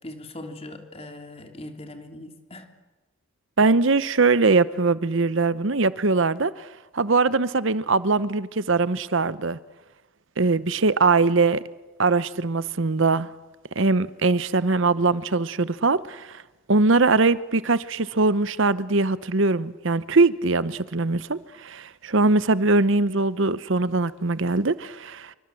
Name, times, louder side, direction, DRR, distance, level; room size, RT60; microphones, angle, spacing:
voice 1, 0.0-2.7, left 1 dB, 25° left, 3.1 m, -40 dB
voice 2, 3.6-6.7 6.9-9.6 10.4-11.6 12.0-13.3 13.8-16.4 16.7-25.3, right 3 dB, 60° right, 0.9 m, -21 dB
27.0 x 25.0 x 7.7 m
head